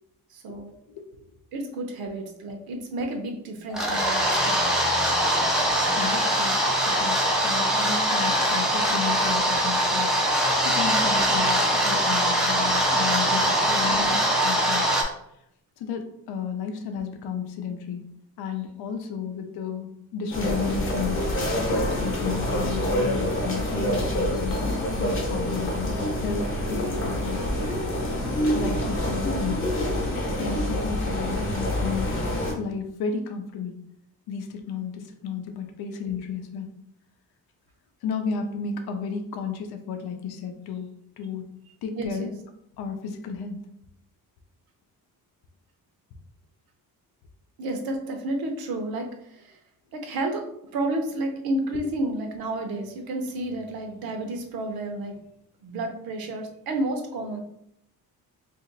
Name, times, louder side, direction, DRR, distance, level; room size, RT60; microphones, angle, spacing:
voice 1, 0.3-0.7 1.5-4.7 13.8-14.1 41.9-42.3 47.6-49.6 49.9-50.4 50.7-55.2 55.6-57.4, right 1 dB, 70° right, 4 dB, 0.8 m, -31 dB
sound 1, 3.7-15.0, equal, ahead, 0.4 m, -22 dB
voice 2, 6.0-10.2 10.6-14.2 14.4-14.9 15.8-18.0 18.4-21.3 21.7-24.6 25.0-27.5 28.5-29.7 30.4-32.2 32.6-33.8 34.3-36.8 38.0-40.9 41.2-41.6 41.8-42.3 42.8-43.6, left 6 dB, 85° left, 5 dB, 0.6 m, -33 dB
sound 2, 20.3-32.5, left 1 dB, 35° left, 0.9 m, -26 dB
2.8 x 2.5 x 3.9 m, 0.75 s
cardioid pair, 170°, 37 cm